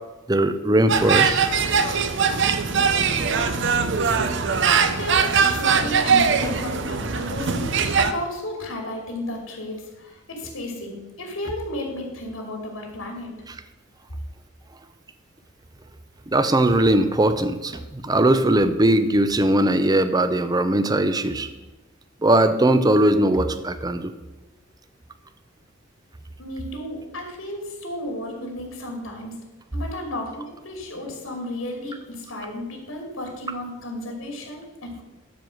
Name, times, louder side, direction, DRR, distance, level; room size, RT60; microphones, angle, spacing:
voice 1, 0.3-1.4 2.5-2.6 13.5-13.6 16.3-21.5 22.2-24.1, right 1 dB, 20° right, 10 dB, 0.6 m, -20 dB
sound 1, 0.9-8.1, right 5 dB, 60° right, 0.7 m, -21 dB
voice 2, 5.0-13.3 26.4-29.3 29.7-35.0, left 1 dB, 90° left, 1 dB, 2.9 m, -33 dB
12.0 x 4.8 x 7.7 m, 1.1 s
head